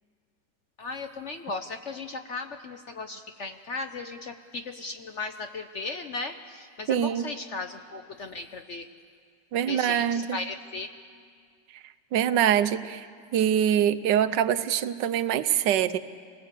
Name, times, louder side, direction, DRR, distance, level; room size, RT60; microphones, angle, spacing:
voice 1, 0.8-8.9 9.7-10.9, left 3 dB, 55° left, 7 dB, 0.9 m, -36 dB
voice 2, 6.9-7.3 9.5-10.4 12.1-13.1 13.3-16.0, right 10 dB, 75° right, 11 dB, 1.4 m, -24 dB
25.5 x 19.5 x 8.3 m, 2.1 s
omnidirectional pair, 1.9 m